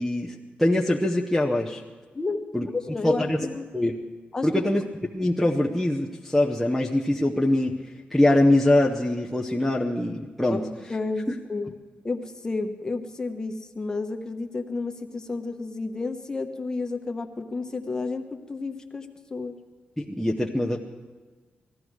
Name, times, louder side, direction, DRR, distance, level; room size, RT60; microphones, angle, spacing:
voice 1, 0.0-1.8 2.5-2.7 3.0-3.4 3.7-3.9 4.4-4.8 5.1-7.8 8.1-10.6 11.3-11.4 20.0-20.8, left 1 dB, ahead, -3 dB, 0.7 m, -23 dB
voice 2, 2.1-3.7 4.3-4.7 10.5-11.7 12.0-19.5, left 3 dB, 20° left, 5 dB, 1.0 m, -31 dB
19.5 x 14.5 x 4.7 m, 1.4 s
wide cardioid pair, 175°, 4 cm